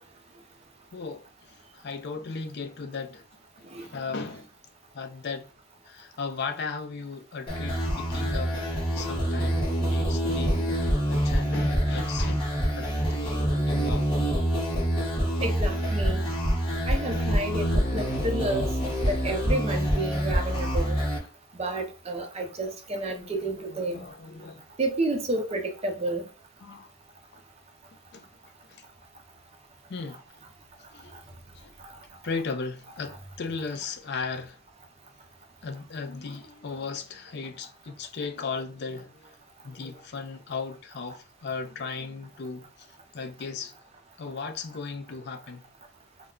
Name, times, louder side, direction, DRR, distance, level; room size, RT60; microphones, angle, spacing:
voice 1, 0.9-3.2 3.6-4.5 4.9-5.5 5.9-8.6 8.9-14.1 17.3-19.3 23.1-24.6 26.6-26.9 28.1-28.3 28.7-28.8 29.9-30.2 30.9-31.2 31.6-31.7 32.2-34.6 35.6-39.3 39.6-42.9 43.1-43.7 44.2-45.7, left 4 dB, 55° left, 0.4 m, -37 dB
sound 1, 7.5-21.2, equal, 25° left, 1.1 m, -26 dB
voice 2, 15.4-16.2 16.9-18.7 19.1-21.0 21.6-24.0 24.8-26.2, right 2 dB, 30° right, 0.5 m, -30 dB
2.2 x 2.2 x 3.6 m
head